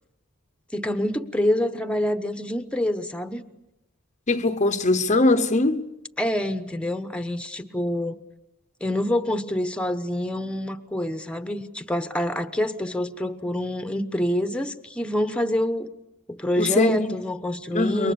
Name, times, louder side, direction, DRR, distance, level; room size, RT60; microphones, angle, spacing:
voice 1, 0.7-3.4 6.2-8.2 8.8-15.9 16.3-18.1, left 1 dB, 5° left, 1.1 m, -26 dB
voice 2, 4.3-5.9 16.6-17.2 17.7-18.1, left 2 dB, 35° left, 0.9 m, -21 dB
28.0 x 23.0 x 7.0 m
head